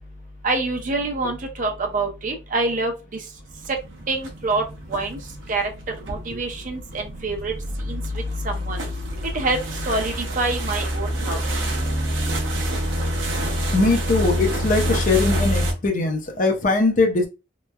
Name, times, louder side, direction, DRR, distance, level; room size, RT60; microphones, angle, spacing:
voice 1, 0.4-3.2 4.1-4.6 4.9-5.2 5.5-5.7 6.1-7.5 7.9-8.0 8.4-8.8 9.3-9.6 9.9-11.4, right 3 dB, 45° right, 4 dB, 0.5 m, -26 dB
sound 1, 3.4-15.7, equal, 80° right, 0.7 m, -27 dB
voice 2, 13.7-17.3, left 3 dB, 45° left, 3 dB, 0.6 m, -21 dB
3.0 x 2.1 x 2.2 m, 0.28 s
head